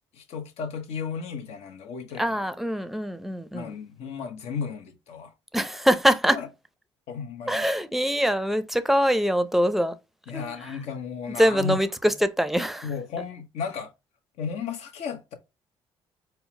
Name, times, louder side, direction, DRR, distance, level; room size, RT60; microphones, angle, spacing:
voice 1, 0.1-2.3 3.5-5.3 6.3-6.5 7.1-7.6 10.3-11.8 12.8-13.9 14.4-15.3, left 6 dB, 75° left, 0.9 m, -34 dB
voice 2, 2.2-3.7 5.5-6.4 7.5-10.0 10.3-10.5 11.4-12.9, equal, ahead, 0.5 m, -23 dB
4.4 x 2.1 x 3.2 m
supercardioid pair, 70°, 11 cm